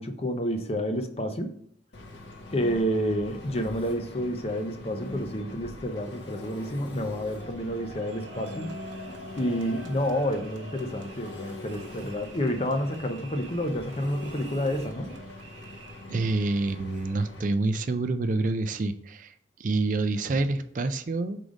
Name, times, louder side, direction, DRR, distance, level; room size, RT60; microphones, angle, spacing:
voice 1, 0.0-1.5 2.5-8.7 9.4-15.1, equal, 30° left, 6 dB, 0.6 m, -29 dB
Engine, 1.9-17.5, left 2 dB, 70° left, 1.1 m, -43 dB
sound 1, 7.3-16.2, right 3 dB, 90° right, 0.8 m, -47 dB
voice 2, 16.1-19.3 19.6-21.4, right 3 dB, 45° right, 10 dB, 0.4 m, -27 dB
4.8 x 3.8 x 5.1 m, 0.65 s
head